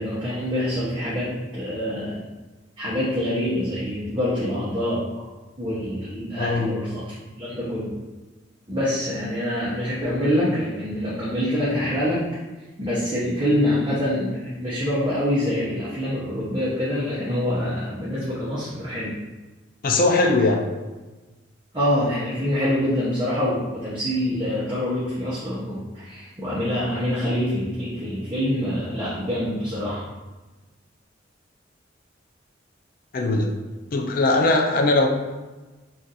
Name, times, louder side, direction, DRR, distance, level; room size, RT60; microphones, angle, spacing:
voice 1, 0.0-2.2 2.8-5.0 5.6-7.0 7.4-7.9 8.7-12.2 12.8-19.2 21.7-30.0, left 1 dB, 25° right, -9 dB, 0.7 m, -25 dB
voice 2, 6.4-6.7 19.8-20.6 33.1-33.5 33.9-35.1, left 2 dB, 50° left, 2 dB, 0.4 m, -20 dB
2.4 x 2.4 x 4.0 m, 1.2 s
head